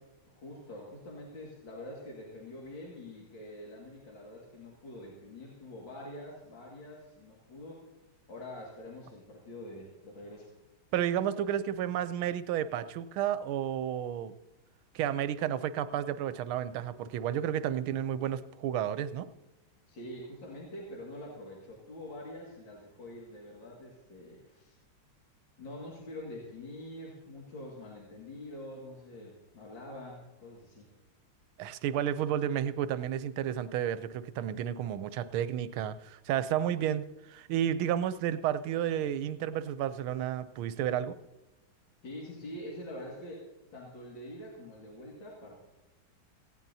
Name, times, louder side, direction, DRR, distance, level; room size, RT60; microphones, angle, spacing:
voice 1, 0.3-7.8 8.3-10.5 19.9-24.8 25.6-30.9 42.0-43.4 43.7-45.6, left 1 dB, 65° left, -3 dB, 2.7 m, -45 dB
voice 2, 10.9-14.3 14.9-19.3 31.6-41.1, right 10 dB, 80° right, 13 dB, 1.5 m, -31 dB
18.0 x 16.0 x 2.7 m, 1.0 s
omnidirectional pair, 2.3 m